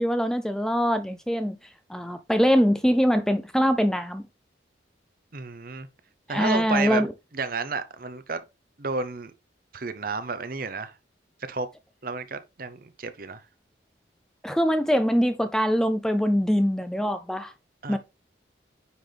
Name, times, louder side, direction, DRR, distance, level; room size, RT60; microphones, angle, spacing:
voice 1, 0.0-1.6 1.9-4.3 6.3-7.1 14.4-17.5 17.9-18.0, equal, 5° left, 0.4 m, -23 dB
voice 2, 5.3-5.9 6.3-7.0 7.3-8.4 8.8-9.3 9.7-10.9 11.4-11.7 12.0-13.4 17.8-18.0, right 4 dB, 50° right, 0.7 m, -31 dB
9.6 x 4.0 x 3.3 m
head